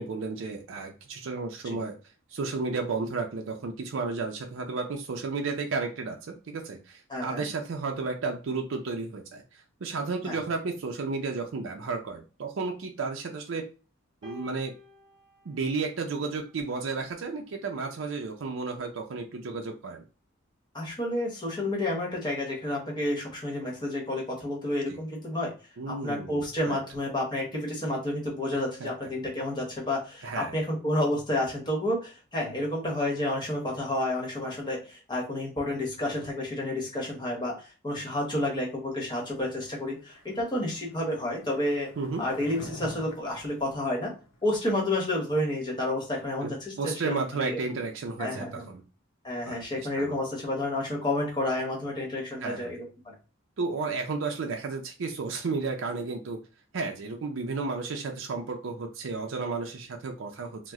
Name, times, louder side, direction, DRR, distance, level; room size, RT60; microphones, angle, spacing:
voice 1, 0.0-2.0 2.3-13.7 14.2-14.7 15.5-20.0 24.9-25.0 25.8-26.8 28.5-28.9 30.2-30.5 42.0-42.2 46.4-46.5 46.8-48.8 49.4-50.1 52.4-52.7 53.6-56.4 56.7-60.7, right 4 dB, 70° right, 3 dB, 0.5 m, -33 dB
voice 2, 7.1-7.4 10.2-10.4 20.7-25.5 25.9-41.9 42.2-44.1 44.4-47.6 48.2-48.6 49.2-53.1, left 1 dB, 20° left, -1 dB, 1.0 m, -30 dB
sound 1, 14.2-16.7 17.7-17.9, left 4 dB, 20° right, 0.9 m, -51 dB
Skateboard, 39.4-44.8, left 1 dB, 80° left, 0.8 m, -48 dB
2.9 x 2.0 x 3.5 m, 0.34 s
head